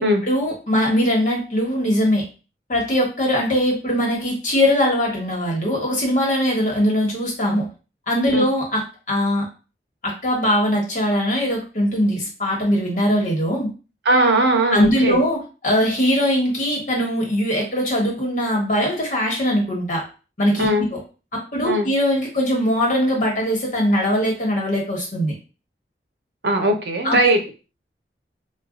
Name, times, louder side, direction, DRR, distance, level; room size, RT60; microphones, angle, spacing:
voice 1, 0.2-2.2 2.7-7.7 8.1-8.8 9.1-9.5 10.0-13.7 14.7-20.0 20.4-21.0 21.5-25.4 27.0-27.2, equal, 45° left, -2 dB, 1.2 m, -21 dB
voice 2, 14.0-15.3 20.6-20.9 21.6-21.9 26.4-27.5, right 1 dB, 75° right, 4 dB, 0.7 m, -19 dB
4.1 x 2.3 x 2.4 m, 0.33 s
head